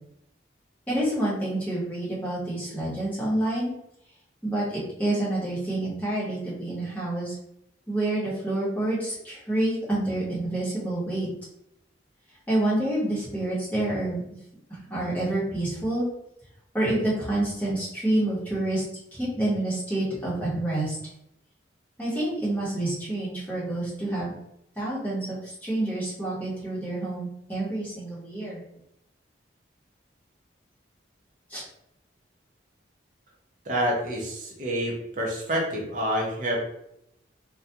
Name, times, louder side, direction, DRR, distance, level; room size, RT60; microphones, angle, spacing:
voice 1, 0.9-3.7 4.4-7.4 7.9-11.3 12.5-14.2 14.9-16.1 16.7-18.8 19.1-21.0 22.0-24.3 24.8-28.6 31.5-31.6, right 1 dB, 10° left, -8 dB, 1.0 m, -28 dB
voice 2, 33.6-36.6, equal, 40° right, -2 dB, 0.7 m, -28 dB
2.3 x 2.2 x 2.8 m, 0.79 s
head